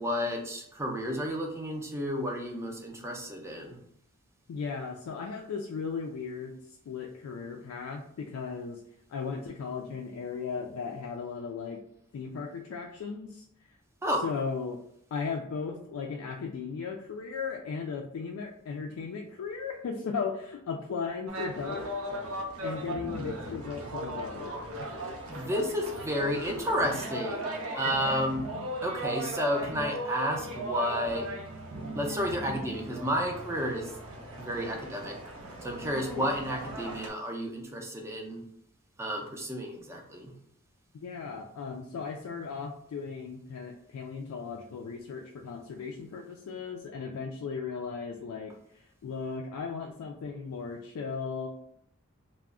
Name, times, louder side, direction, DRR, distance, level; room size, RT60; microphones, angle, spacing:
voice 1, 0.0-3.8 14.0-14.2 25.3-28.5 28.8-31.3 31.9-33.9 34.4-35.1 35.6-38.4 39.0-40.3, equal, 15° right, 1 dB, 0.4 m, -31 dB
voice 2, 4.5-8.8 9.1-11.8 12.1-13.4 14.2-14.8 15.1-21.9 22.6-24.5 35.9-36.3 40.9-51.5, left 5 dB, 85° left, 1 dB, 0.3 m, -36 dB
sound 1, 21.3-37.1, right 1 dB, 75° right, 0.5 m, -38 dB
2.3 x 2.0 x 3.5 m, 0.71 s
head